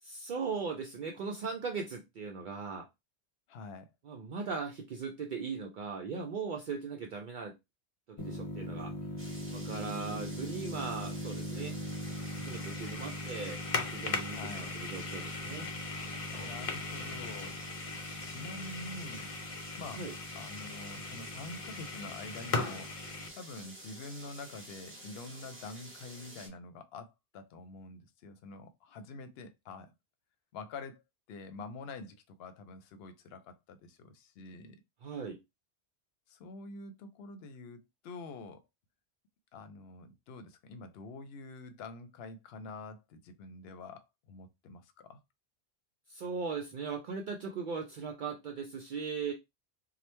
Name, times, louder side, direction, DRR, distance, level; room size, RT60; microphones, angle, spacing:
voice 1, 0.0-2.9 4.0-7.5 8.1-8.9 9.5-11.8 12.3-15.7 20.0-20.1 35.0-35.4 46.1-49.3, right 5 dB, 60° right, 0.6 m, -39 dB
voice 2, 3.5-3.9 14.3-14.7 16.2-17.6 18.2-19.3 19.8-20.1 20.3-29.9 30.5-31.0 31.3-34.8 36.3-38.6 39.5-45.2, left 3 dB, 70° left, 0.8 m, -46 dB
sound 1, 8.2-23.3, left 2 dB, 45° left, 0.5 m, -39 dB
sound 2, 9.2-26.5, right 1 dB, 15° right, 0.8 m, -50 dB
2.9 x 2.1 x 3.2 m
omnidirectional pair, 1.1 m